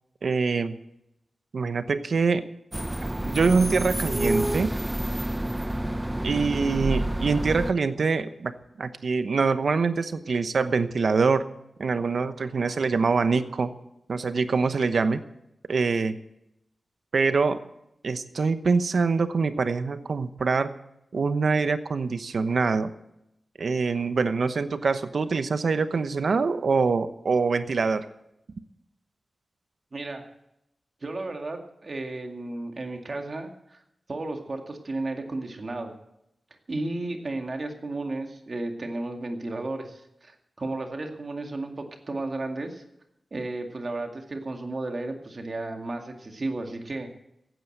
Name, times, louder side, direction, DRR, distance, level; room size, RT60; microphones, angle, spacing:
voice 1, 0.2-0.8 1.5-2.4 3.2-4.8 6.2-8.5 8.8-11.5 11.8-13.7 14.1-15.2 15.7-16.2 17.1-17.6 18.0-20.8 21.1-22.9 23.6-28.0, right 4 dB, 65° right, 11 dB, 1.0 m, -24 dB
sound 1, 2.7-7.7, right 1 dB, 10° right, 0.5 m, -28 dB
voice 2, 29.9-30.2 31.0-33.8 34.1-35.9 36.7-42.8 43.3-47.1, right 2 dB, 40° right, 4 dB, 2.1 m, -33 dB
15.5 x 9.3 x 7.9 m, 0.83 s
wide cardioid pair, 120°, 0 cm